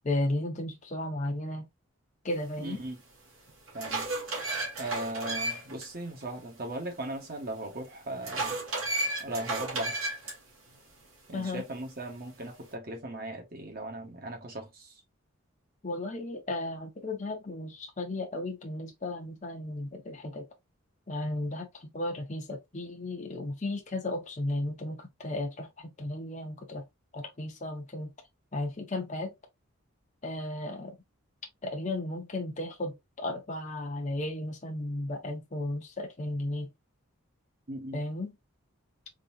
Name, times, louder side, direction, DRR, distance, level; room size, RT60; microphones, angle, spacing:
voice 1, 0.0-1.7 2.2-2.8 11.3-11.6 15.8-20.5 21.1-26.8 27.1-28.1 28.5-29.3 30.2-31.0 31.6-36.7 37.9-38.4, left 1 dB, 35° left, 0.7 m, -34 dB
voice 2, 2.6-3.0 3.7-4.1 4.8-8.6 9.2-10.0 11.3-14.9 37.7-38.0, right 1 dB, 45° right, 1.3 m, -38 dB
sound 1, 2.8-2.9 3.5-5.8 6.2-6.3 8.2-10.3, right 2 dB, 75° right, 1.9 m, -33 dB
3.9 x 2.8 x 2.6 m
head